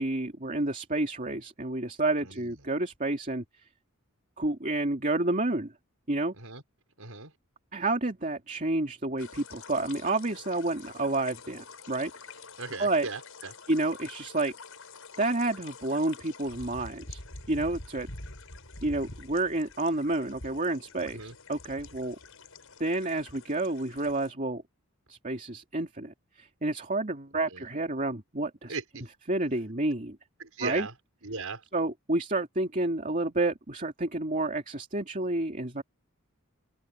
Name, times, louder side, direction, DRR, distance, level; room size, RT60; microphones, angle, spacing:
voice 1, 0.0-3.4 4.4-5.7 6.1-6.3 7.7-12.1 12.8-13.1 13.7-14.5 15.2-17.2 17.5-18.1 18.8-22.2 22.8-24.6 25.1-28.8 29.3-30.2 30.6-30.9 31.7-35.8, right 2 dB, 35° right, 2.7 m, -30 dB
voice 2, 2.2-2.5 6.3-6.6 7.0-7.3 12.6-13.5 21.1-21.3 27.5-27.6 28.7-29.0 30.4-30.9 31.2-31.6, right 4 dB, 75° right, 6.0 m, -37 dB
sound 1, 9.2-24.3, left 3 dB, 70° left, 7.6 m, -47 dB
head